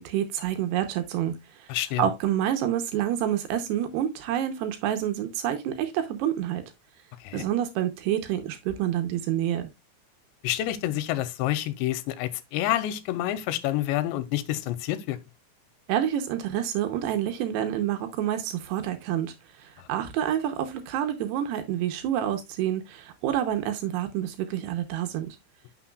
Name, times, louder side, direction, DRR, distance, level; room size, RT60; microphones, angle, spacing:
voice 1, 0.0-1.7 2.0-6.6 7.3-9.7 15.9-25.4, right 11 dB, 80° right, 2.8 m, -28 dB
voice 2, 1.7-2.1 7.2-7.5 10.4-15.2 19.8-19.9, left 13 dB, 85° left, 2.9 m, -28 dB
10.0 x 6.1 x 2.3 m
omnidirectional pair, 5.2 m